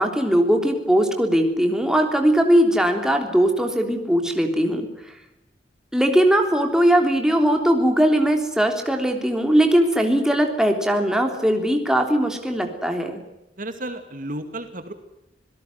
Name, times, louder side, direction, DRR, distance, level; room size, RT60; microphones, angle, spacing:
voice 1, 0.0-4.9 5.9-13.2, equal, 5° right, 3 dB, 3.3 m, -20 dB
voice 2, 13.6-14.9, right 1 dB, 50° right, 8 dB, 2.3 m, -32 dB
27.0 x 17.5 x 7.9 m, 0.92 s
head